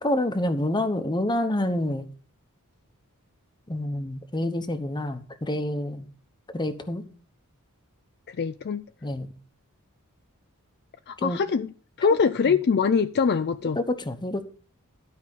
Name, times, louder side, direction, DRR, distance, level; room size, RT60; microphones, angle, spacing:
voice 1, 0.0-2.1 3.7-6.1 6.5-7.0 9.0-9.3 11.2-11.4 12.5-12.6 13.8-14.4, left 1 dB, 20° left, 1.0 m, -27 dB
voice 2, 8.3-8.8 11.1-11.7 12.0-13.8, left 5 dB, 50° left, 0.4 m, -23 dB
12.5 x 4.8 x 6.5 m
head